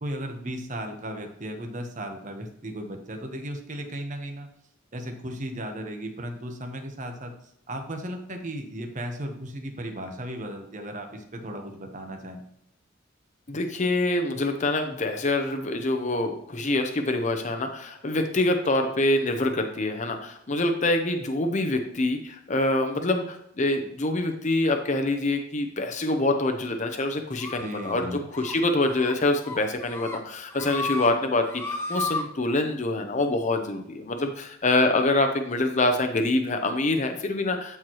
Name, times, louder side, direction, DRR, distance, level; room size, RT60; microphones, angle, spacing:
voice 1, 0.0-4.5 4.9-7.3 7.7-12.4 27.6-28.3, equal, 40° right, 4 dB, 1.1 m, -35 dB
voice 2, 13.5-37.8, left 2 dB, 35° left, 5 dB, 0.7 m, -25 dB
sound 1, 27.4-28.0 28.3-28.5 28.9-29.1 29.4-30.2 30.5-31.1 31.4-32.2, left 3 dB, 10° left, 1.0 m, -33 dB
12.5 x 4.5 x 3.1 m, 0.77 s
head